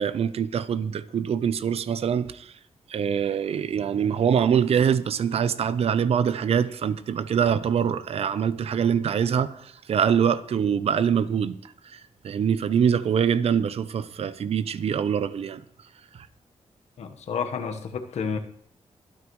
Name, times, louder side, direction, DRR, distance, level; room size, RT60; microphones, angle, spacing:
voice 1, 0.0-2.5 2.9-11.6 11.9-15.6, right 7 dB, 60° right, 0.6 m, -24 dB
voice 2, 17.0-18.4, left 6 dB, 75° left, 1.2 m, -30 dB
23.5 x 9.5 x 3.1 m
cardioid pair, 110°, 11 cm